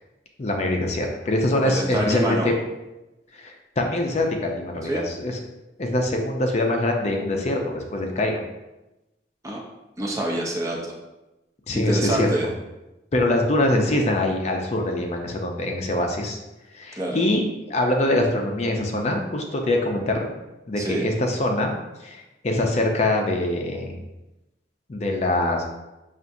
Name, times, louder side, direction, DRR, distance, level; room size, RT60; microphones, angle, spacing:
voice 1, 0.4-2.5 3.3-5.4 5.8-8.4 11.7-12.3 13.1-16.4 16.7-20.4 20.7-21.7 22.0-24.0 24.9-25.6, left 1 dB, 40° left, 2 dB, 0.5 m, -24 dB
voice 2, 1.6-2.5 4.8-5.0 9.4-9.6 10.0-11.0 11.7-12.5 17.0-17.2 20.8-21.1, right 1 dB, 20° right, -1 dB, 0.5 m, -26 dB
5.6 x 2.5 x 2.6 m, 0.99 s
head